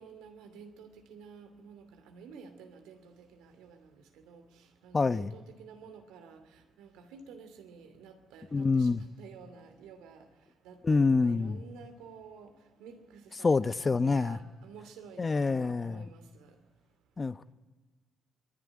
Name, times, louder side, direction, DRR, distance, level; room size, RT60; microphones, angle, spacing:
voice 1, 0.0-3.8 4.3-4.4 4.8-6.4 6.8-10.2 10.6-12.5 12.8-16.2, right 5 dB, 90° right, 2.7 m, -51 dB
voice 2, 4.9-5.3 8.5-9.0 10.8-11.6 13.4-14.4 15.2-16.0 17.2-17.5, left 4 dB, 35° left, 0.9 m, -26 dB
24.5 x 21.5 x 9.9 m
supercardioid pair, 60°, 0 cm